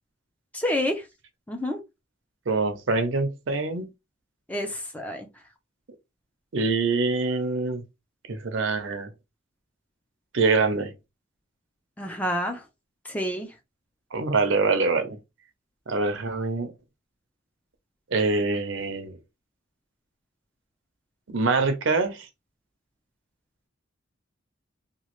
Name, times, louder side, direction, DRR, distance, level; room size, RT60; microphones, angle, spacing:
voice 1, 0.5-1.1 1.5-1.8 4.5-5.3 12.0-12.6 13.1-13.5, left 1 dB, 10° left, 0.5 m, -28 dB
voice 2, 2.5-3.9 6.5-7.8 8.3-9.1 10.3-10.9 14.1-15.2 15.9-16.7 18.1-19.2 21.3-22.3, right 3 dB, 75° right, 0.7 m, -24 dB
2.9 x 2.3 x 3.0 m
head